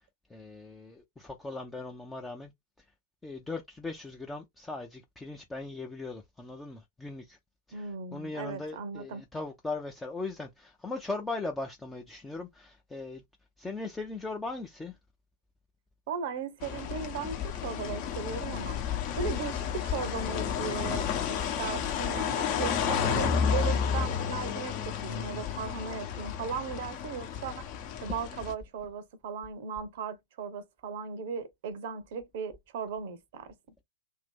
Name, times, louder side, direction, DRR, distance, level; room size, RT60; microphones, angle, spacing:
voice 1, 0.3-2.5 3.2-7.4 7.7-13.2 13.6-15.0, left 3 dB, 10° left, 0.6 m, -39 dB
voice 2, 7.7-9.2 16.1-18.8 19.2-27.7 28.0-33.5, right 6 dB, 55° right, 0.7 m, -37 dB
sound 1, 16.6-28.5, left 7 dB, 45° left, 0.9 m, -31 dB
2.7 x 2.4 x 3.6 m
figure-of-eight pair, 100°, 0 cm